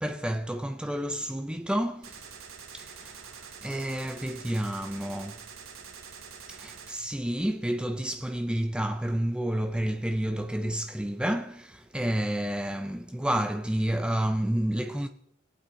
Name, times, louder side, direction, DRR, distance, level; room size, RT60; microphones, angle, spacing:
voice 1, 0.0-2.3 2.7-5.4 6.5-15.1, right 1 dB, 5° right, 0.4 m, -30 dB
Gunshot gunfire, 2.0-7.0, right 6 dB, 80° right, 1.9 m, -46 dB
24.0 x 8.8 x 4.1 m
head